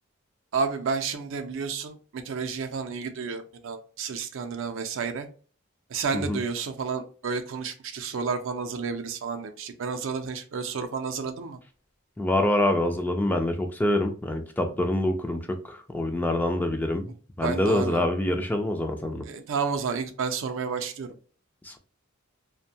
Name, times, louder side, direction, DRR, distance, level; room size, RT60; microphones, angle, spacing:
voice 1, 0.5-5.3 5.9-11.6 17.4-18.0 19.3-21.1, right 5 dB, 65° right, 0.4 m, -31 dB
voice 2, 12.2-19.2 21.6-21.8, left 1 dB, 10° left, 0.3 m, -26 dB
2.6 x 2.1 x 2.7 m
head